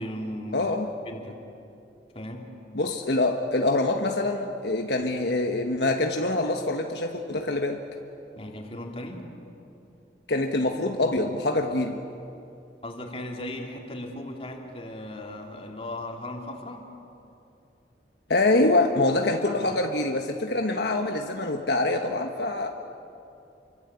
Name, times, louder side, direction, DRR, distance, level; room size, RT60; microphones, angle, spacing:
voice 1, 0.0-0.7 1.0-1.4 2.1-2.5 8.3-9.3 12.8-16.9 19.7-19.8, left 1 dB, 35° left, 2 dB, 3.1 m, -37 dB
voice 2, 0.5-0.9 2.7-7.8 10.3-12.0 18.3-22.7, left 2 dB, 70° left, 3 dB, 1.4 m, -25 dB
28.5 x 24.5 x 8.3 m, 2.7 s
head